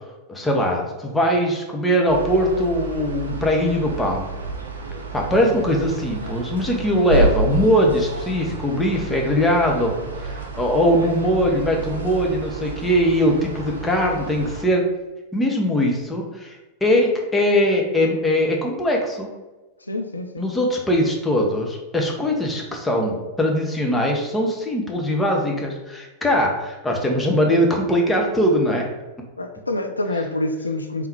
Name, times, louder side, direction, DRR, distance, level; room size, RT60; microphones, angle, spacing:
voice 1, 0.3-4.2 5.1-9.9 10.2-14.8 15.3-16.6 16.8-19.3 20.4-28.8, equal, 10° left, 0 dB, 0.9 m, -21 dB
sound 1, 2.1-14.7, right 2 dB, 70° right, 0.7 m, -30 dB
voice 2, 19.8-20.5 29.4-31.1, left 2 dB, 80° left, 6 dB, 0.3 m, -27 dB
3.6 x 3.3 x 4.4 m, 1.1 s
figure-of-eight pair, 90°, 0 cm